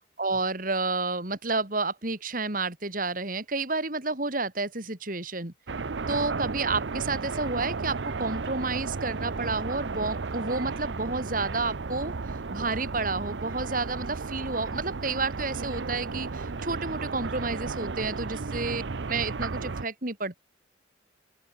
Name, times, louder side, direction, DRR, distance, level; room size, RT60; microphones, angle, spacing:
voice 1, 0.2-5.5 6.1-12.1 12.5-20.4, right 3 dB, 45° right, 3.1 m, -30 dB
sound 1, 5.7-19.8, right 4 dB, 75° right, 0.7 m, -34 dB
open air
head